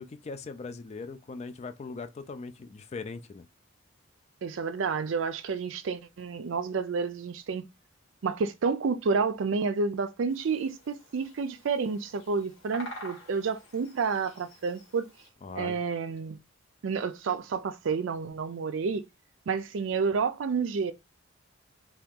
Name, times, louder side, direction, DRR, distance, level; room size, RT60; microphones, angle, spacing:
voice 1, 0.0-3.5 15.4-15.8, left 4 dB, 35° left, 0.3 m, -40 dB
voice 2, 4.4-7.6 8.2-15.0 15.6-16.4 16.8-19.0 19.5-20.9, right 5 dB, 70° right, 0.4 m, -30 dB
Bird vocalization bird call bird song, 10.3-15.3, equal, 90° left, 1.2 m, -48 dB
2.9 x 2.3 x 3.5 m
head